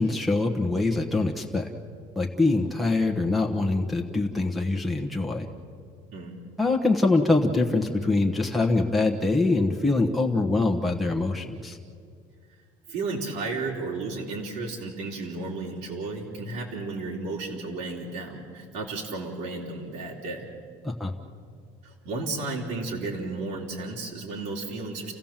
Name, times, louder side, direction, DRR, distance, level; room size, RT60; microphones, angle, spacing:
voice 1, 0.0-1.7 2.1-5.5 6.6-11.8 20.8-21.1, left 3 dB, ahead, 0 dB, 1.2 m, -24 dB
voice 2, 12.9-20.5 21.8-25.1, right 3 dB, 75° right, -2 dB, 3.5 m, -33 dB
29.0 x 16.0 x 7.4 m, 2.2 s
cardioid pair, 165°, 14 cm